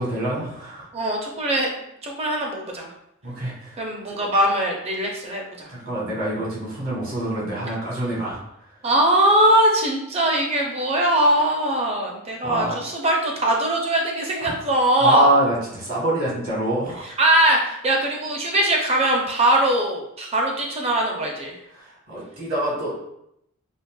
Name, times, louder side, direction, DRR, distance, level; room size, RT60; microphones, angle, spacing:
voice 1, 0.0-0.9 3.2-3.8 5.7-8.4 12.4-12.8 14.4-14.6 15.0-17.2 21.7-23.0, right 1 dB, 70° right, -5 dB, 1.2 m, -26 dB
voice 2, 0.9-1.7 2.0-2.9 3.8-5.7 8.8-15.3 17.0-21.5, right 1 dB, 30° right, 0 dB, 0.4 m, -21 dB
3.9 x 2.0 x 2.2 m, 0.79 s
head